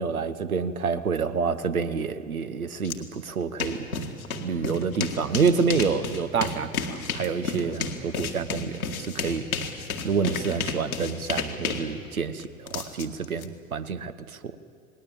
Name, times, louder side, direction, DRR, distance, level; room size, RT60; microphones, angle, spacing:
voice 1, 0.0-3.9 4.3-9.5 10.0-14.6, right 5 dB, 85° right, 11 dB, 1.0 m, -28 dB
sound 1, 2.8-3.0 3.3-13.4, left 4 dB, 85° left, 2.0 m, -32 dB
28.5 x 19.5 x 8.5 m, 2.3 s
figure-of-eight pair, 70°, 42 cm